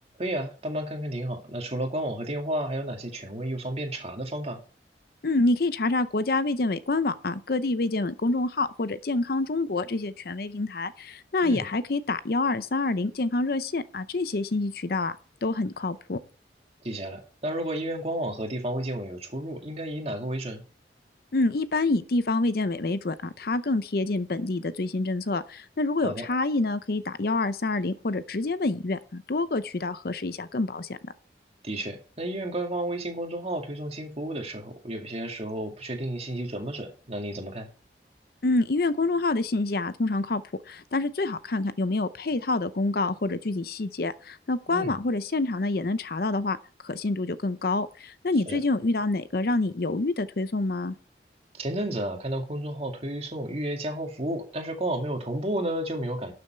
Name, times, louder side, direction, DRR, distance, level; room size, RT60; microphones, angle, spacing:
voice 1, 0.2-4.6 11.4-11.6 16.8-20.6 26.0-26.3 31.6-37.7 44.7-45.0 48.5-48.6 51.5-56.3, right 1 dB, 35° right, 2.2 m, -32 dB
voice 2, 5.2-15.1 15.4-16.2 21.3-31.0 38.4-46.6 46.8-50.9, left 2 dB, 55° left, 0.6 m, -27 dB
12.0 x 7.0 x 4.5 m
head